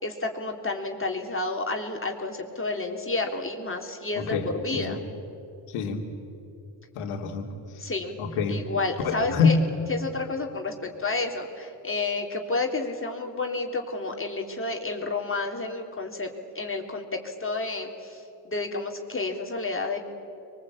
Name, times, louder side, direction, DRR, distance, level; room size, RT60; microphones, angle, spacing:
voice 1, 0.0-4.4 4.6-5.0 7.8-8.2 8.5-9.6 9.9-16.3 16.5-20.0, left 3 dB, 25° left, 1 dB, 3.4 m, -30 dB
voice 2, 4.1-5.0 5.7-6.0 6.9-7.5 7.7-7.9 8.2-8.6 9.0-9.6, left 5 dB, 85° left, 3 dB, 3.1 m, -26 dB
27.0 x 23.5 x 8.7 m, 2.7 s
supercardioid pair, 70°, 49 cm